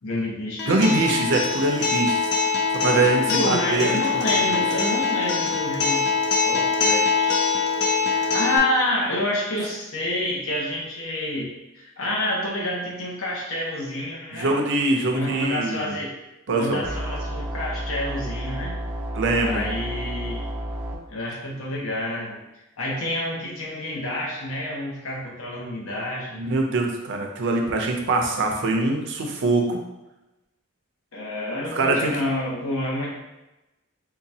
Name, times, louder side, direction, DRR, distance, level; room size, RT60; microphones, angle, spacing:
voice 1, 0.0-0.8 3.3-6.1 6.4-7.4 8.0-14.6 15.1-16.1 16.5-18.8 19.4-20.5 21.1-22.4 22.8-26.4 31.1-33.2, left 1 dB, 75° left, -3 dB, 0.9 m, -28 dB
Acoustic guitar, 0.6-8.6, left 5 dB, 50° left, 0.4 m, -23 dB
voice 2, 0.7-2.3 2.7-4.0 4.4-4.5 14.3-15.9 16.5-16.8 19.1-19.6 26.4-29.8 31.7-32.1, right 2 dB, 60° right, 2 dB, 0.5 m, -23 dB
sound 1, 16.8-20.9, equal, 5° right, 0.4 m, -31 dB
3.8 x 2.3 x 2.7 m, 0.97 s
head